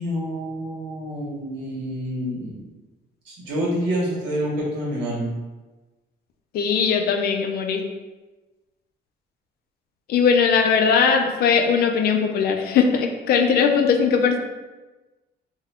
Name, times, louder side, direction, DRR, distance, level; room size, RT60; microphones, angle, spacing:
voice 1, 0.0-2.6 3.2-5.3, equal, 90° right, -4 dB, 1.3 m, -27 dB
voice 2, 6.5-7.9 10.1-14.4, left 6 dB, 60° left, 5 dB, 0.4 m, -19 dB
3.5 x 2.2 x 3.5 m, 1.2 s
cardioid pair, 160°, 19 cm